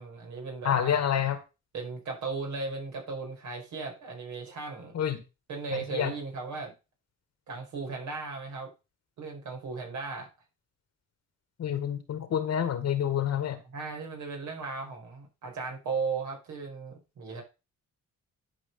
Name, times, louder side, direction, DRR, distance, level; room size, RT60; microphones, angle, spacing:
voice 1, 0.0-1.0 1.7-4.9 5.5-6.7 7.5-8.7 9.2-10.3 13.7-17.4, right 4 dB, 70° right, 5.1 m, -36 dB
voice 2, 0.6-1.4 4.9-5.2 5.7-6.1 11.6-13.6, left 9 dB, 60° left, 1.9 m, -28 dB
11.0 x 5.1 x 5.4 m
cardioid pair, 90°, 30 cm